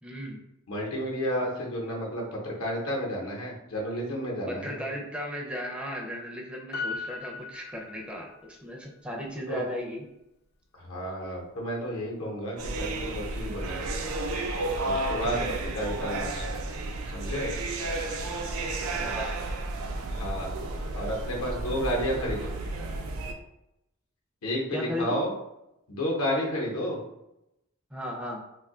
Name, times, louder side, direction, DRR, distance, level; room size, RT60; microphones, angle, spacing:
voice 1, 0.0-0.4 4.5-10.0 15.2-15.5 19.0-19.3 24.7-25.2 27.9-28.4, left 1 dB, 5° right, -2 dB, 0.4 m, -36 dB
voice 2, 0.7-4.8 9.5-9.6 10.7-13.8 14.8-16.5 17.1-17.5 20.1-20.5 20.9-22.5 24.4-25.3 25.9-27.0, equal, 80° left, -2 dB, 0.8 m, -31 dB
Piano, 6.7-8.5 8.8-8.9, left 4 dB, 50° left, 0.4 m, -37 dB
sound 1, 12.6-23.3, right 2 dB, 75° right, 0.4 m, -32 dB
2.6 x 2.3 x 3.6 m, 0.86 s
head